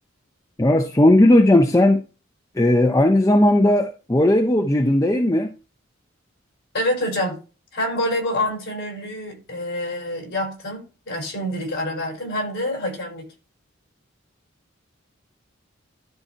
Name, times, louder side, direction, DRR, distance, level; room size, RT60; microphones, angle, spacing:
voice 1, 0.6-2.0 2.5-5.5, left 1 dB, 15° left, 0.5 m, -16 dB
voice 2, 6.7-7.4 7.7-13.3, left 1 dB, 55° left, 5.4 m, -27 dB
12.5 x 4.3 x 4.5 m
head